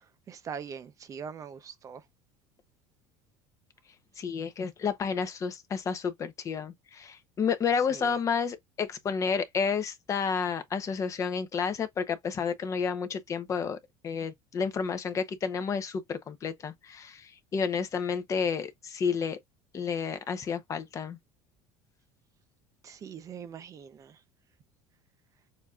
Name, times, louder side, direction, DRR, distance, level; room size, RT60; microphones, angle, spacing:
voice 1, 0.3-2.0 7.9-8.1 22.8-24.2, right 7 dB, 35° right, 0.7 m, -42 dB
voice 2, 4.2-13.8 14.0-19.4 19.7-21.2, left 6 dB, 30° left, 0.8 m, -31 dB
6.8 x 2.7 x 2.4 m
cardioid pair, 130°, 10 cm